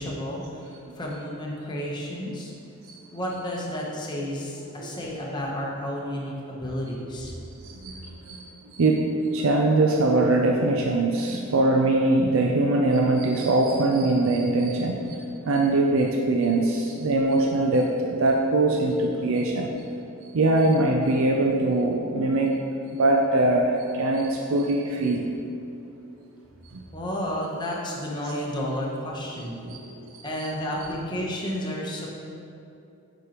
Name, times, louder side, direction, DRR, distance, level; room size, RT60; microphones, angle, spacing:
voice 1, 0.0-2.5 3.1-7.3 26.9-29.6 30.2-32.1, equal, 20° left, -3 dB, 0.9 m, -31 dB
voice 2, 7.6-8.4 8.7-9.1 9.3-19.7 20.3-22.6 22.9-25.3 26.7-26.8 29.6-30.1, right 2 dB, 65° right, 1 dB, 0.4 m, -22 dB
7.9 x 5.1 x 2.9 m, 2.7 s
head